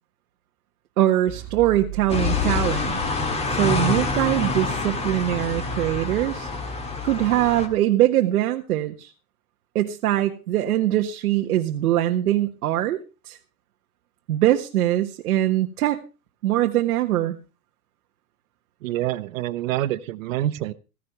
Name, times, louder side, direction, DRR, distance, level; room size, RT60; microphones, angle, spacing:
voice 1, 1.0-3.0 3.5-6.5 7.0-9.1 9.7-13.4 14.3-16.0 16.4-17.4, right 13 dB, 85° right, 3 dB, 1.6 m, -22 dB
sound 1, 1.3-7.4, right 9 dB, 35° right, 2.2 m, -40 dB
sound 2, 2.1-7.7, left 4 dB, 15° left, 2.0 m, -26 dB
voice 2, 18.8-20.7, right 14 dB, 60° right, 13 dB, 1.1 m, -26 dB
16.0 x 15.5 x 3.3 m, 0.32 s
supercardioid pair, 155°, 44 cm